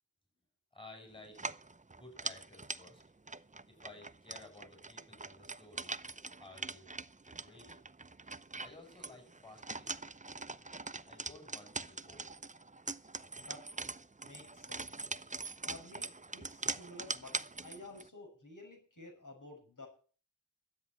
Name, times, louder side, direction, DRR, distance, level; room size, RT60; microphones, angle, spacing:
voice 1, 0.7-1.4 1.9-3.0 3.6-6.0 6.4-6.8 7.2-7.9 8.6-10.1 11.1-12.3, left 2 dB, 15° left, 3 dB, 6.7 m, -55 dB
sound 1, 1.3-18.1, right 3 dB, 25° right, 0.6 m, -43 dB
voice 2, 13.4-13.7 14.2-15.0 15.6-19.9, left 2 dB, 70° left, 1 dB, 6.4 m, -52 dB
12.5 x 8.7 x 8.9 m, 0.41 s
wide cardioid pair, 50°, 32 cm